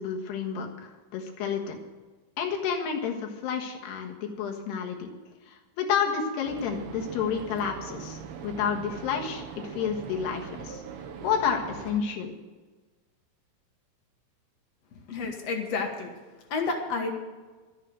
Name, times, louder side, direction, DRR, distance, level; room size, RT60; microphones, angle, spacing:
voice 1, 0.0-1.8 2.4-5.1 5.5-10.8 11.2-12.3, left 7 dB, 85° left, 2 dB, 3.6 m, -30 dB
sound 1, 6.4-12.0, right 7 dB, 75° right, 3.1 m, -41 dB
voice 2, 14.9-16.1 16.5-17.1, left 4 dB, 55° left, 3 dB, 1.9 m, -30 dB
12.5 x 9.3 x 7.9 m, 1.3 s
omnidirectional pair, 4.7 m